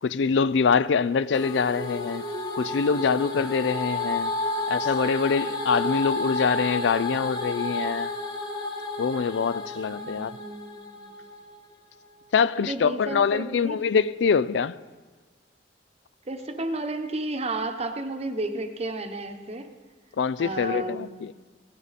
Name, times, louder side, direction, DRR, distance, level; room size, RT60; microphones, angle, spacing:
voice 1, 0.0-2.2 2.6-4.3 4.7-8.1 9.0-10.3 12.3-14.8 20.2-21.3, left 5 dB, 70° left, 0.4 m, -24 dB
sound 1, 1.3-11.5, left 2 dB, 25° left, 1.8 m, -31 dB
voice 2, 10.0-11.1 12.6-13.8 16.3-19.7 20.4-21.1, right 2 dB, 35° right, 1.0 m, -32 dB
16.5 x 14.5 x 4.2 m
head